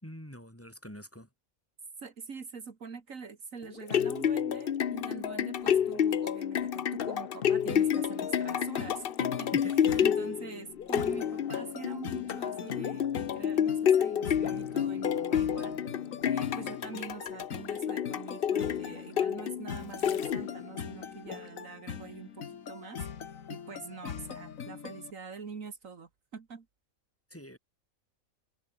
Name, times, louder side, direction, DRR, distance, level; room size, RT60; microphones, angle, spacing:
voice 1, 0.0-1.3 9.5-10.1 27.3-27.6, equal, 10° left, 5.0 m, -45 dB
voice 2, 2.0-9.5 10.0-13.1 13.3-15.8 16.3-23.0 23.5-26.7, right 5 dB, 65° right, 2.2 m, -44 dB
sound 1, 3.6-20.7 21.3-21.4, left 9 dB, 50° left, 0.8 m, -29 dB
sound 2, 7.7-25.1, left 7 dB, 70° left, 1.8 m, -42 dB
omnidirectional pair, 1.5 m